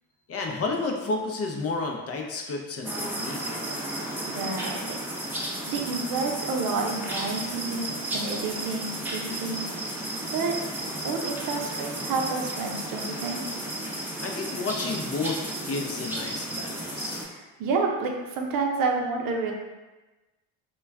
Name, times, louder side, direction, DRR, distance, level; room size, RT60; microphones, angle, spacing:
voice 1, 0.3-3.4 14.2-17.3, left 3 dB, 40° left, 1 dB, 0.5 m, -31 dB
sound 1, 2.8-17.2, right 1 dB, 5° right, 0.6 m, -33 dB
voice 2, 3.8-5.0 5.6-9.7 10.3-10.6 11.0-13.4 17.2-19.5, right 4 dB, 65° right, 2 dB, 0.6 m, -30 dB
2.2 x 2.2 x 3.4 m, 1.1 s
supercardioid pair, 75°, 37 cm